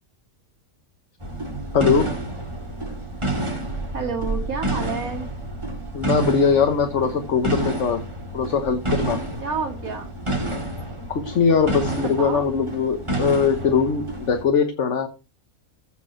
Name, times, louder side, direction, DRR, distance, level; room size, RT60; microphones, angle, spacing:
sound 1, 1.2-14.4, right 2 dB, 20° right, 2.0 m, -29 dB
voice 1, 1.7-2.1 5.9-8.0 8.3-9.2 11.1-15.1, left 6 dB, 60° left, 6 dB, 1.4 m, -21 dB
voice 2, 3.9-5.3 9.4-10.1 12.2-12.5, right 4 dB, 75° right, 1 dB, 2.1 m, -29 dB
15.5 x 5.4 x 4.4 m, 0.30 s
omnidirectional pair, 1.5 m